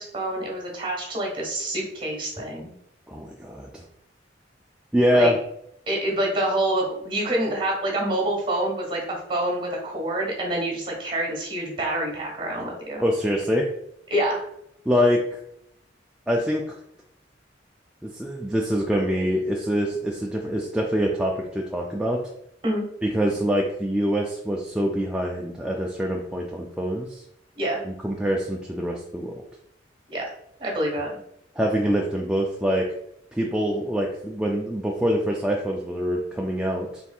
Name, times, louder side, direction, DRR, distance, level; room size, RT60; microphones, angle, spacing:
voice 1, 0.0-2.7 5.1-5.3 5.9-13.0 14.1-14.5 22.6-22.8 27.6-27.8 30.1-30.3 30.6-31.1, right 1 dB, 30° right, -1 dB, 1.4 m, -27 dB
voice 2, 3.1-3.8 4.9-5.4 13.0-13.7 14.9-15.4 16.3-16.8 18.0-22.2 23.0-27.2 27.8-29.4 31.6-32.9 33.3-37.0, equal, 5° right, -2 dB, 0.3 m, -25 dB
4.3 x 3.4 x 2.4 m, 0.75 s
head